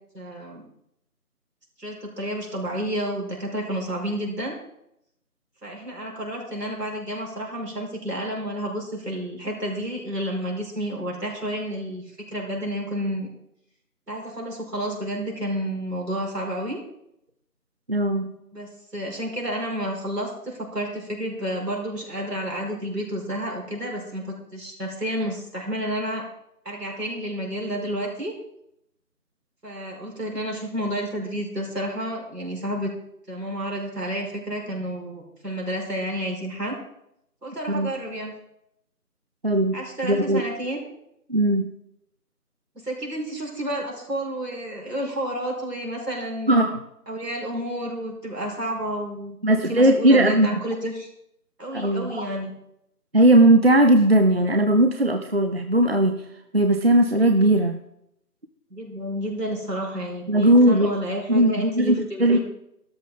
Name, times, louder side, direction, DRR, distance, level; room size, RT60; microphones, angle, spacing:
voice 1, 0.1-0.7 1.8-4.6 5.6-13.3 14.1-16.8 18.5-26.2 26.7-28.3 29.6-32.9 33.3-36.8 37.4-38.3 39.7-40.8 42.8-46.6 47.1-51.1 51.6-52.5 58.7-62.4, equal, 80° right, -1 dB, 5.1 m, -30 dB
voice 2, 17.9-18.3 37.7-37.9 39.4-39.8 40.0-40.4 41.3-41.7 46.5-46.8 49.4-50.6 51.7-52.3 53.1-56.2 56.5-57.8 60.3-60.9 61.3-62.4, right 1 dB, 40° right, 6 dB, 0.7 m, -18 dB
13.0 x 13.0 x 3.8 m, 0.77 s
figure-of-eight pair, 160°, 47 cm